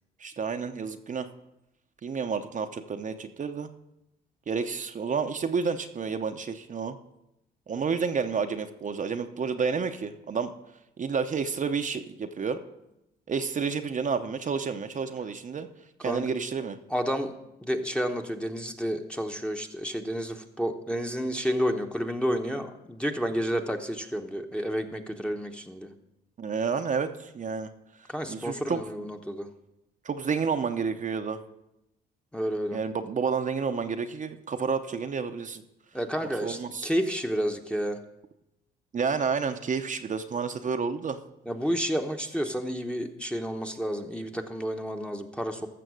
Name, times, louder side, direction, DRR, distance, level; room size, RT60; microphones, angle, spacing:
voice 1, 0.2-1.3 2.0-3.7 4.5-7.0 7.7-10.5 11.0-12.6 13.3-15.7 16.0-16.8 26.4-27.7 28.3-28.8 30.0-31.4 32.7-35.6 36.4-36.9 38.9-41.2, right 5 dB, 40° right, 7 dB, 0.7 m, -30 dB
voice 2, 16.9-17.3 17.6-25.9 28.1-29.5 32.3-32.8 35.9-38.0 41.5-45.7, equal, 5° left, 2 dB, 1.0 m, -30 dB
14.5 x 6.2 x 6.2 m, 0.88 s
cardioid pair, 90°, 20 cm